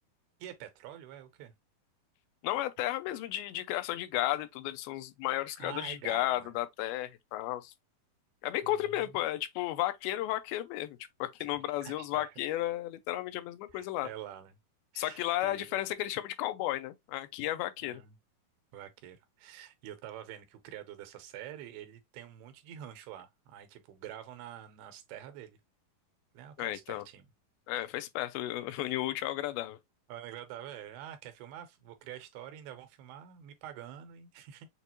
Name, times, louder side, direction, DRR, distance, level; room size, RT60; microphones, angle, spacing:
voice 1, 0.4-1.5 5.6-6.6 8.6-9.1 11.8-12.3 13.7-14.6 14.9-15.8 17.8-18.2 18.7-25.6 26.3-27.3 30.1-34.7, right 11 dB, 85° right, 2.8 m, -47 dB
voice 2, 2.4-7.7 8.4-14.1 15.0-18.0 26.6-27.0 27.7-29.8, left 15 dB, 85° left, 2.4 m, -33 dB
6.7 x 2.4 x 2.8 m
omnidirectional pair, 4.4 m